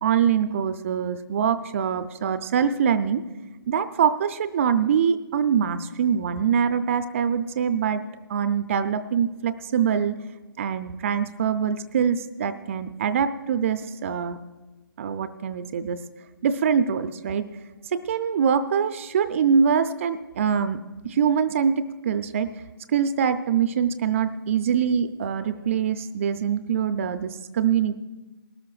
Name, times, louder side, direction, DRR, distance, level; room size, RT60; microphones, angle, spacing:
voice 1, 0.0-3.2 3.7-8.0 8.3-10.2 10.6-14.4 15.0-16.0 16.4-17.5 17.9-22.5 22.9-27.9, right 7 dB, 35° right, 10 dB, 0.5 m, -24 dB
20.0 x 13.0 x 2.4 m, 1.1 s
figure-of-eight pair, 145°, 13 cm